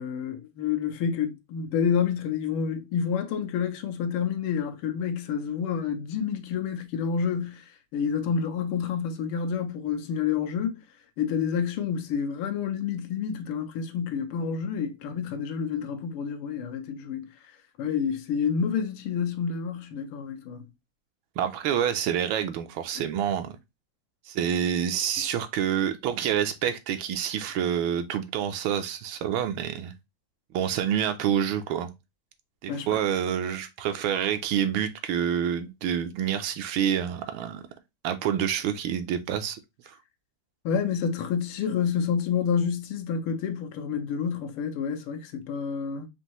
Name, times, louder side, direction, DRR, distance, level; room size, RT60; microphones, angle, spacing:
voice 1, 0.0-10.8 11.2-20.6 22.9-23.0 32.7-33.1 40.7-46.1, left 7 dB, 85° left, 1.6 m, -29 dB
voice 2, 21.4-23.6 24.3-29.9 30.5-31.9 32.6-37.7 38.0-39.6 39.9-40.0, right 9 dB, 75° right, 1.4 m, -27 dB
5.3 x 2.7 x 2.9 m
omnidirectional pair, 2.4 m